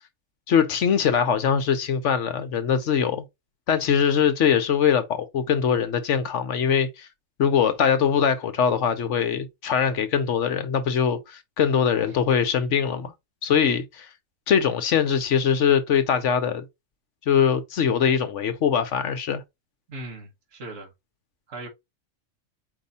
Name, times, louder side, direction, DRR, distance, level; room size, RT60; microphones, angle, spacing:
voice 1, 0.5-3.2 3.7-7.1 7.4-13.1 13.4-14.1 14.5-16.6 17.3-19.4, left 7 dB, 65° left, 1.0 m, -22 dB
voice 2, 19.9-20.9 21.5-21.7, right 2 dB, 60° right, 1.6 m, -38 dB
4.8 x 2.7 x 3.9 m
omnidirectional pair, 1.4 m